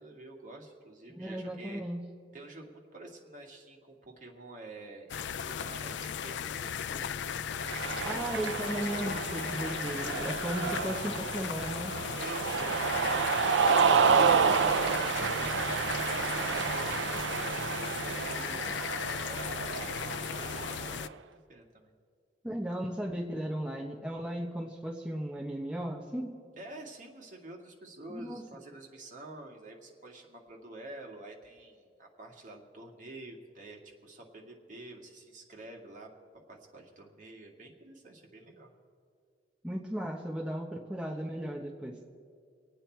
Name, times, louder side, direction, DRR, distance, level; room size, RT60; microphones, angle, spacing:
voice 1, 0.0-1.8 2.3-7.4 10.6-10.9 12.2-15.6 16.0-21.2 21.5-21.9 26.6-36.1 36.5-38.7, right 2 dB, 45° right, 0 dB, 2.1 m, -48 dB
voice 2, 1.2-2.0 8.0-11.9 22.4-26.3 28.1-28.4 39.6-42.1, equal, 5° right, -1 dB, 1.0 m, -36 dB
sound 1, 5.1-21.1, left 8 dB, 70° left, 0.4 m, -37 dB
Cheering, 7.6-21.0, right 6 dB, 75° right, 0.5 m, -30 dB
25.5 x 8.9 x 4.5 m, 2.2 s
head